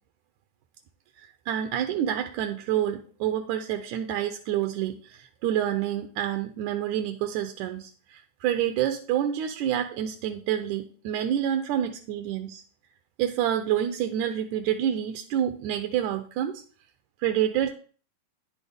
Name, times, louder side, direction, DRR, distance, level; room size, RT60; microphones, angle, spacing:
voice 1, 1.2-12.6 13.2-16.6 17.2-17.7, right 10 dB, 80° right, 7 dB, 1.9 m, -28 dB
10.0 x 6.3 x 3.4 m, 0.41 s
omnidirectional pair, 3.6 m